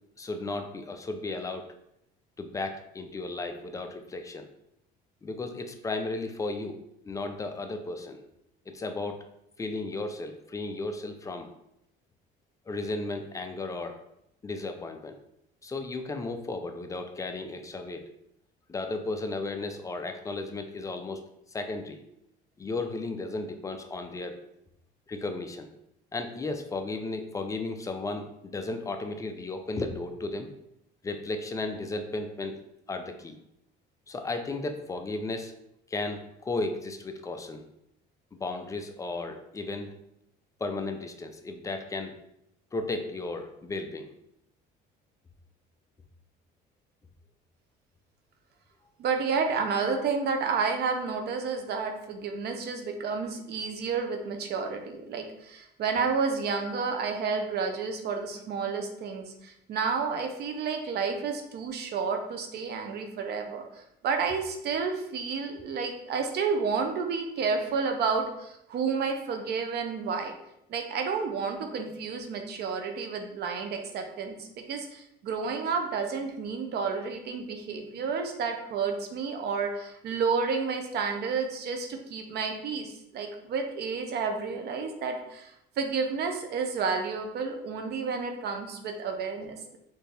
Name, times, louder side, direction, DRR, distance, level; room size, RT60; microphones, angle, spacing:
voice 1, 0.2-1.7 2.4-4.5 5.2-6.8 7.0-8.2 8.7-9.2 9.6-11.5 12.7-14.0 14.4-15.2 15.6-18.0 18.7-21.2 21.5-22.0 22.6-24.4 25.1-25.7 26.1-30.5 31.0-32.6 32.9-33.4 34.1-35.5 35.9-37.6 38.3-39.9 40.6-42.1 42.7-44.1, left 2 dB, 15° left, 6 dB, 0.4 m, -34 dB
voice 2, 49.0-70.3 70.7-89.8, right 5 dB, 55° right, 5 dB, 0.7 m, -31 dB
4.3 x 2.6 x 3.3 m, 0.80 s
cardioid pair, 125°, 20 cm